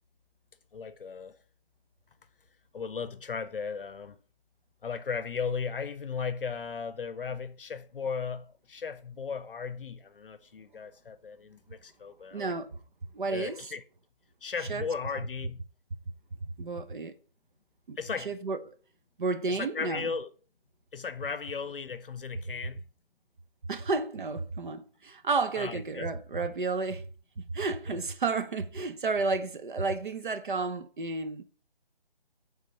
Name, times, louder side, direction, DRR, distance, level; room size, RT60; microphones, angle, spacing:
voice 1, 0.7-1.4 2.7-4.2 4.8-12.5 13.3-13.8 14.4-15.6 18.0-18.3 19.5-20.3 20.9-22.8 25.5-26.1 27.9-28.0, left 5 dB, 65° left, 0.6 m, -36 dB
voice 2, 12.3-12.8 13.1-13.6 14.7-14.8 16.6-17.1 17.9-18.0 18.2-18.6 19.2-20.1 23.7-27.0 27.4-31.4, right 3 dB, 55° right, 0.8 m, -31 dB
6.0 x 3.7 x 5.4 m
figure-of-eight pair, 155°, 30 cm